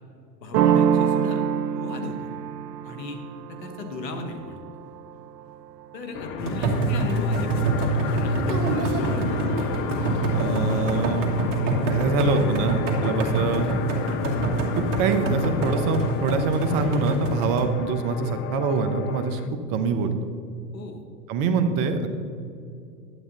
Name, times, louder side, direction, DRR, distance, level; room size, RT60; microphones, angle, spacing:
voice 1, 0.4-1.5 1.7-2.3 2.8-3.2 3.5-4.6 5.9-7.7 8.1-9.6 20.7-21.0, left 3 dB, 80° left, 5 dB, 1.5 m, -35 dB
sound 1, 0.5-6.1, right 8 dB, 75° right, 0.7 m, -26 dB
sound 2, 6.1-19.5, left 8 dB, 25° left, 0.5 m, -32 dB
sound 3, 6.4-17.6, right 2 dB, 55° right, 2.2 m, -25 dB
voice 2, 10.3-11.3 11.7-13.7 14.8-19.4 19.7-20.1 21.3-22.1, right 4 dB, 40° right, 8 dB, 1.2 m, -25 dB
11.0 x 8.6 x 4.1 m, 2.5 s
hypercardioid pair, 105°, 50 cm